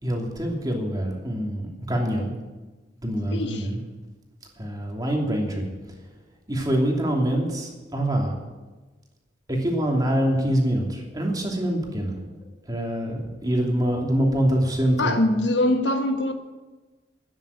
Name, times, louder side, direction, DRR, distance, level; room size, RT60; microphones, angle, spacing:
voice 1, 0.0-2.3 3.0-3.8 4.6-5.7 6.5-8.3 9.5-12.2 12.7-15.2, right 1 dB, 20° right, 2.9 m, -25 dB
voice 2, 3.3-3.7 15.0-16.3, left 1 dB, 90° left, 1.4 m, -23 dB
13.0 x 9.9 x 8.6 m
head